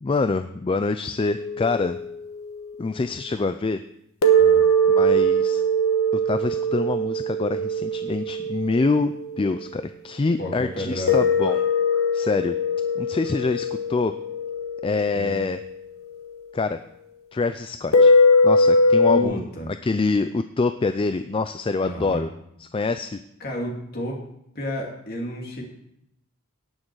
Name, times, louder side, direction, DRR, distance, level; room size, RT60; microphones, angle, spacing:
voice 1, 0.0-2.0 2.8-3.8 4.9-5.6 6.3-11.6 12.1-12.5 13.0-14.1 14.8-15.6 16.5-16.8 17.3-18.1 18.4-19.5 19.8-22.3 22.6-23.2, left 3 dB, 25° left, 10 dB, 0.3 m, -25 dB
sound 1, 1.2-2.8 4.2-9.7 11.1-16.5 17.9-19.2, equal, 65° left, 1.2 m, -21 dB
voice 2, 10.4-11.3 15.1-15.4 19.1-19.7 21.8-22.3 23.4-24.2 24.5-25.6, equal, 45° left, -1 dB, 2.5 m, -31 dB
17.5 x 6.5 x 4.7 m, 0.76 s
head